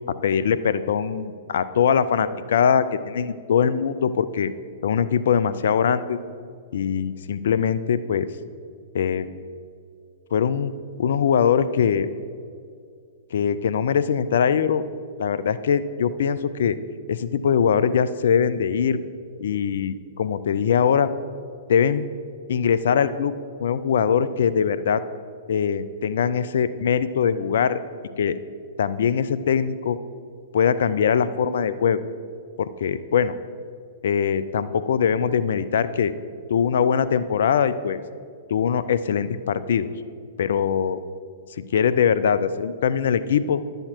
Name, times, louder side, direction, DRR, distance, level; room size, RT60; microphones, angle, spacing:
voice 1, 0.2-4.5 4.8-6.2 6.7-8.3 8.9-9.3 10.3-10.7 11.0-12.1 13.3-14.8 15.2-16.8 17.1-19.0 19.4-21.1 21.7-22.0 22.5-23.3 23.6-25.0 25.5-27.8 28.2-28.4 28.8-30.0 30.5-32.0 32.6-33.3 34.0-36.1 36.5-38.0 38.5-39.9 40.4-41.0 41.6-43.6, left 7 dB, 70° left, 14 dB, 0.4 m, -22 dB
11.0 x 7.9 x 4.4 m, 2.2 s
hypercardioid pair, 115°, 0 cm